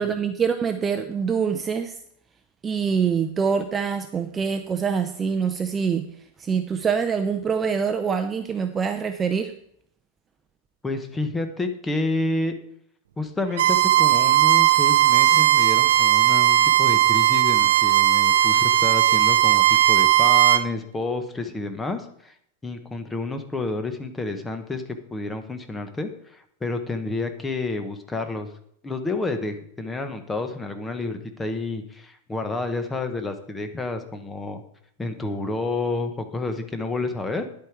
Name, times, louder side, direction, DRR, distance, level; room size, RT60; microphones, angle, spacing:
voice 1, 0.0-2.0 2.6-6.0 6.4-9.5, right 6 dB, 15° right, 7 dB, 0.5 m, -25 dB
voice 2, 10.8-12.5 13.2-22.3 22.6-24.8 25.1-28.5 28.8-34.6 35.0-37.5, left 2 dB, 10° left, 7 dB, 1.0 m, -29 dB
Bowed string instrument, 13.5-20.6, right 14 dB, 75° right, 0.6 m, -17 dB
10.5 x 8.4 x 4.6 m, 0.67 s
supercardioid pair, 160°, 0 cm